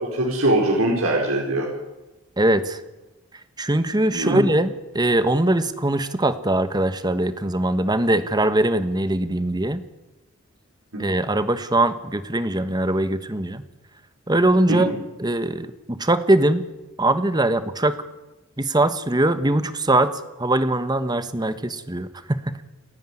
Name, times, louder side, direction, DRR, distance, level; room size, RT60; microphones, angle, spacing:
voice 1, 0.0-1.7 4.1-4.4 10.9-11.0 14.7-14.9, right 1 dB, 90° right, -1 dB, 4.8 m, -22 dB
voice 2, 2.4-2.8 3.6-9.8 11.0-13.6 14.3-14.9 15.2-16.6 17.0-17.9 18.6-20.1 20.4-22.4, right 1 dB, 20° right, 11 dB, 1.3 m, -21 dB
29.0 x 10.5 x 10.0 m, 1.0 s
head